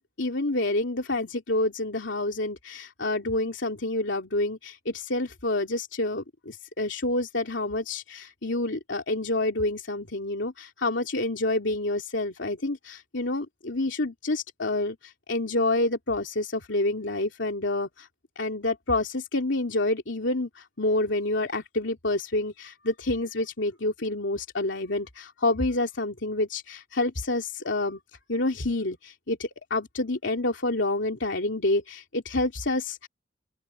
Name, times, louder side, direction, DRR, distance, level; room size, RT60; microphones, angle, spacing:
voice 1, 0.0-18.1 18.4-28.0 28.3-33.1, left 2 dB, 75° left, 2.9 m, -28 dB
open air
head